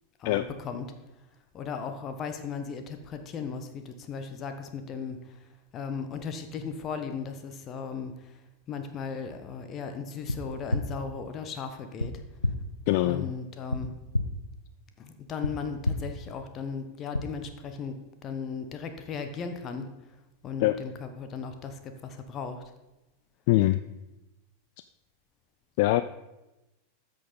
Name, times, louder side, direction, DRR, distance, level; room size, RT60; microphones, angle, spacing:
voice 1, 0.2-0.8 1.5-5.4 5.7-8.3 8.7-12.1 13.0-13.9 15.0-19.9 20.4-22.6, left 5 dB, 30° left, 7 dB, 1.0 m, -37 dB
sound 1, 10.3-10.4 10.7-10.8 12.0-12.1 12.4-12.5 13.7-13.8 14.1-14.2 15.4-15.5 15.8-15.9 17.1-17.2, left 2 dB, 85° left, 0.7 m, -26 dB
voice 2, 12.9-13.3 20.6-20.8 23.5-23.8 25.8-26.0, left 17 dB, 50° left, 12 dB, 0.3 m, -23 dB
13.5 x 6.6 x 4.0 m, 0.99 s
figure-of-eight pair, 90°, 0 cm